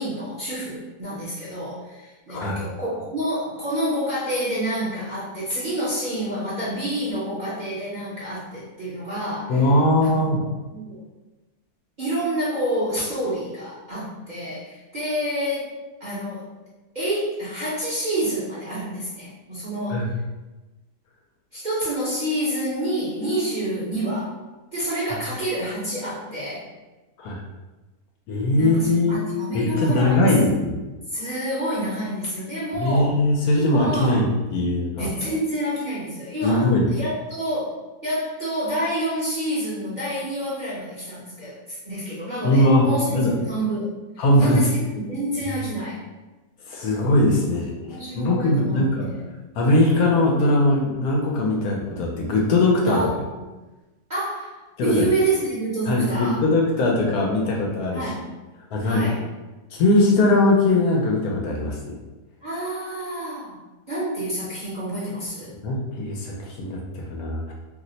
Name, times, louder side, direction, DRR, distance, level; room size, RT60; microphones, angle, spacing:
voice 1, 0.0-9.7 10.0-10.2 10.7-11.0 12.0-15.7 16.0-16.4 16.9-20.0 21.5-24.3 24.7-26.7 28.6-30.3 31.1-33.2 33.5-34.2 35.0-37.7 38.0-46.0 47.8-49.2 52.9-53.5 54.1-56.4 57.9-58.2 58.8-59.2 62.4-63.6 63.9-65.5, right 1 dB, 40° right, -10 dB, 0.7 m, -28 dB
voice 2, 2.3-2.6 9.5-10.4 19.9-20.0 27.2-27.4 28.3-29.2 29.5-30.8 32.8-34.3 34.5-35.1 36.4-36.8 42.4-43.3 44.2-44.6 46.7-49.0 49.6-53.0 54.8-55.1 55.9-58.0 58.7-59.1 59.7-61.9 65.6-67.5, left 1 dB, 75° left, -1 dB, 1.1 m, -20 dB
2.8 x 2.0 x 3.9 m, 1.1 s
omnidirectional pair, 1.7 m